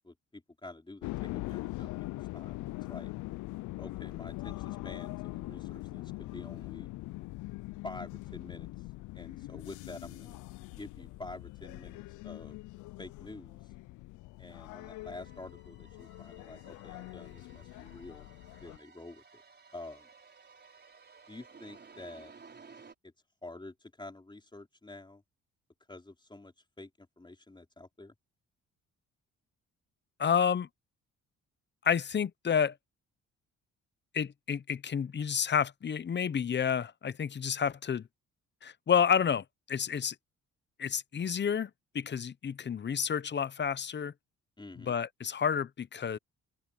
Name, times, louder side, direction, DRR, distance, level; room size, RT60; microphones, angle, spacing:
voice 1, 0.0-1.9 2.3-3.1 3.8-6.9 7.8-8.7 9.1-10.4 10.8-12.6 13.0-13.7 14.4-18.3 18.6-19.4 19.7-20.1 21.3-22.3 23.0-23.1 23.4-25.2 25.9-28.1 44.6-45.0, left 2 dB, 15° left, 4.2 m, -48 dB
sound 1, 1.0-18.8, left 19 dB, 80° left, 0.5 m, -42 dB
sound 2, 14.7-22.9, right 5 dB, 35° right, 5.0 m, -57 dB
voice 2, 30.2-30.7 31.8-32.7 34.1-38.1 38.6-40.1 40.8-44.1 44.8-46.2, left 7 dB, 35° left, 0.9 m, -30 dB
open air
cardioid pair, 90°, 30 cm